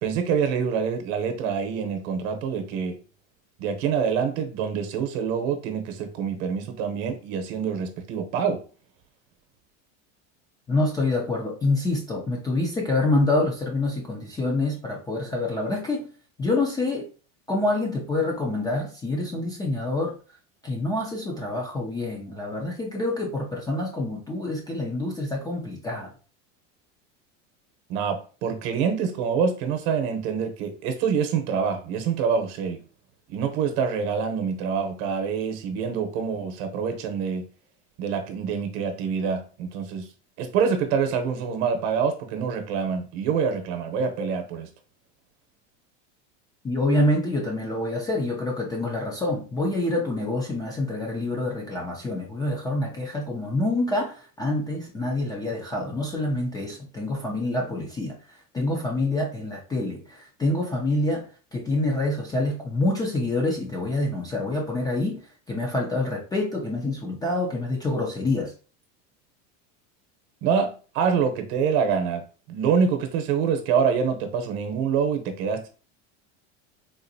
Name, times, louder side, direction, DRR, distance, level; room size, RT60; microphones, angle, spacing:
voice 1, 0.0-3.0 3.6-8.6 27.9-32.8 33.3-37.4 38.0-40.1 40.4-44.7 70.4-72.2 72.5-75.7, right 6 dB, 60° right, 0.9 m, -26 dB
voice 2, 10.7-16.1 16.4-17.1 17.5-20.1 20.6-26.1 46.6-58.2 58.5-65.2 65.5-68.5, left 2 dB, 10° left, 0.4 m, -26 dB
3.8 x 2.5 x 2.7 m
supercardioid pair, 150°, 37 cm